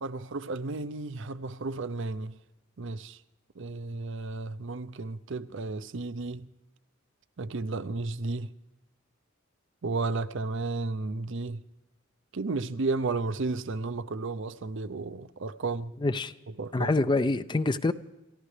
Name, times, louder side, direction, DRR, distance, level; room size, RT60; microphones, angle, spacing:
voice 1, 0.0-2.3 2.8-3.2 3.6-6.5 7.4-8.5 9.8-11.6 12.3-15.9 16.6-16.9, right 3 dB, 60° right, 0.6 m, -33 dB
voice 2, 16.0-16.3 16.7-17.9, left 2 dB, 20° left, 0.4 m, -26 dB
28.5 x 14.5 x 3.3 m
head